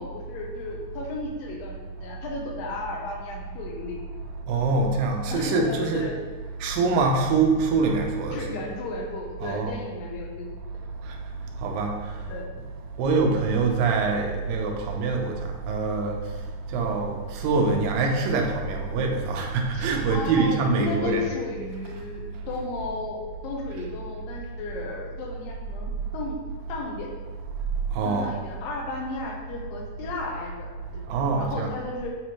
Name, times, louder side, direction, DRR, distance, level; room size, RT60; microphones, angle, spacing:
voice 1, 0.0-1.7 2.0-4.0 5.3-6.2 8.3-10.5 12.3-12.5 19.7-26.4 26.7-27.1 28.0-31.0 31.4-32.1, left 3 dB, 90° left, 0 dB, 2.7 m, -34 dB
voice 2, 4.5-6.1 6.6-8.5 9.4-9.7 11.6-11.9 13.0-15.4 15.7-16.2 16.7-21.3 27.9-28.3 31.1-31.7, right 4 dB, 85° right, 1 dB, 2.5 m, -24 dB
8.4 x 4.3 x 3.1 m, 1.4 s
omnidirectional pair, 3.9 m